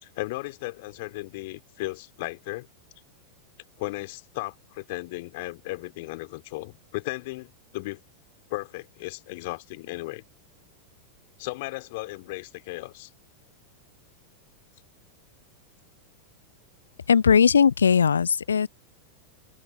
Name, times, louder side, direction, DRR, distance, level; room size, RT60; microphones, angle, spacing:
voice 1, 0.0-2.7 3.8-8.0 8.5-10.2 11.4-13.1, left 22 dB, 50° left, 3.2 m, -35 dB
voice 2, 17.1-18.7, left 6 dB, 70° left, 0.5 m, -19 dB
open air
figure-of-eight pair, 90°, 0 cm